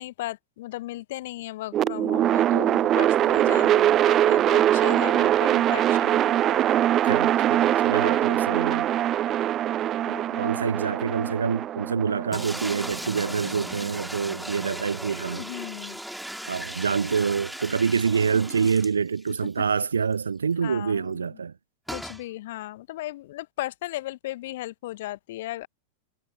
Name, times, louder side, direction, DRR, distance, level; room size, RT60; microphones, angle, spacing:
voice 1, 0.0-6.9 9.3-9.4 10.1-10.5 15.3-16.0 19.6-19.7 20.6-21.4 21.9-25.7, left 16 dB, 55° left, 1.3 m, -36 dB
sound 1, 1.7-13.8, right 12 dB, 30° right, 0.7 m, -22 dB
voice 2, 7.0-8.9 10.4-15.5 16.5-21.5, right 6 dB, 75° right, 0.3 m, -26 dB
sound 2, 12.3-19.5 19.8-19.9 20.1-20.2 21.9-22.2, right 1 dB, ahead, 2.4 m, -37 dB
figure-of-eight pair, 90°, 0 cm